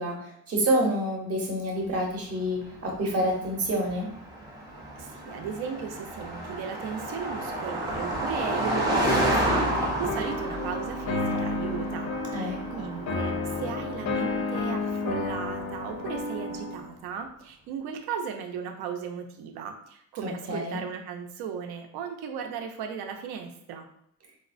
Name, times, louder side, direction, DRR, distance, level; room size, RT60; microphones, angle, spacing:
voice 1, 0.0-4.1 12.3-12.8 20.2-20.8, right 1 dB, 40° right, 0 dB, 0.7 m, -28 dB
Car passing by, 2.6-16.3, right 1 dB, 10° right, 0.3 m, -31 dB
voice 2, 5.0-23.9, right 7 dB, 80° right, 4 dB, 0.6 m, -36 dB
sound 1, 9.0-16.8, left 3 dB, 50° left, 0.5 m, -31 dB
4.2 x 2.1 x 2.4 m, 0.71 s
cardioid pair, 180°, 38 cm